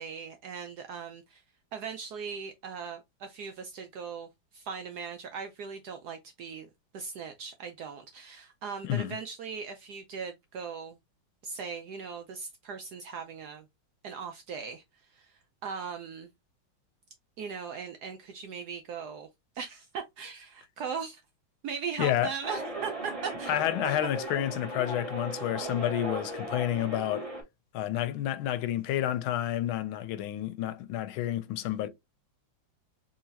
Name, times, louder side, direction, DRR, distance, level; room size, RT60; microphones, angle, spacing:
voice 1, 0.0-1.4 1.7-11.0 11.4-13.7 14.0-14.8 15.1-16.3 17.4-19.3 19.5-21.2 21.6-23.6 23.8-24.1, right 6 dB, 75° right, 0.9 m, -39 dB
voice 2, 8.8-9.2 22.0-22.3 23.5-27.3 27.7-31.9, left 12 dB, 85° left, 1.4 m, -30 dB
sound 1, 22.4-27.4, right 1 dB, 20° right, 1.0 m, -37 dB
3.9 x 3.1 x 2.6 m
omnidirectional pair, 2.2 m